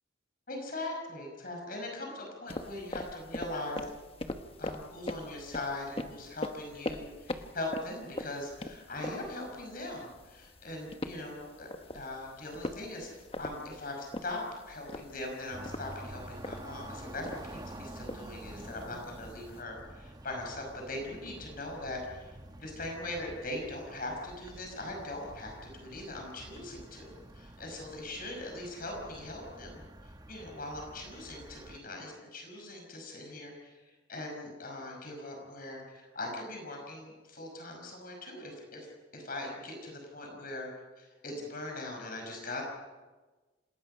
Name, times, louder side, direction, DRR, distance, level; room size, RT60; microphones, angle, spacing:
voice 1, 0.5-3.8 4.6-11.7 11.9-40.7 41.0-42.6, left 2 dB, 45° left, 1 dB, 5.8 m, -41 dB
sound 1, 2.5-19.6, left 1 dB, 30° left, 1.1 m, -43 dB
sound 2, 15.5-31.8, right 1 dB, 20° right, 1.3 m, -49 dB
28.0 x 19.5 x 5.6 m, 1.2 s
head